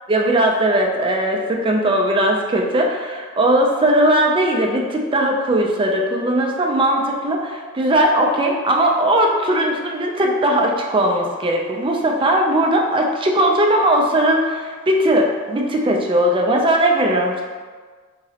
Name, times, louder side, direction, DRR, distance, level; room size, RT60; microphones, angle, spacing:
voice 1, 0.1-17.4, right 1 dB, 25° right, 1 dB, 0.4 m, -18 dB
3.7 x 3.0 x 2.8 m, 1.5 s
head